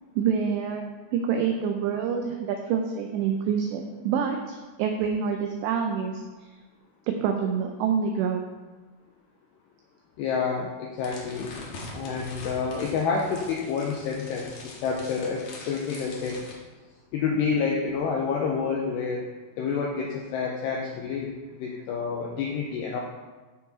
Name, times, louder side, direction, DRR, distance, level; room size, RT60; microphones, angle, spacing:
voice 1, 0.2-0.8 1.1-6.2 7.0-8.4, right 7 dB, 90° right, 4 dB, 2.5 m, -27 dB
voice 2, 10.2-11.5 11.9-16.4 17.1-19.2 19.6-21.3 21.6-23.0, left 5 dB, 80° left, -1 dB, 2.5 m, -28 dB
sound 1, 11.0-16.5, left 2 dB, 65° left, 2.3 m, -43 dB
13.0 x 4.6 x 4.3 m, 1.2 s
omnidirectional pair, 5.7 m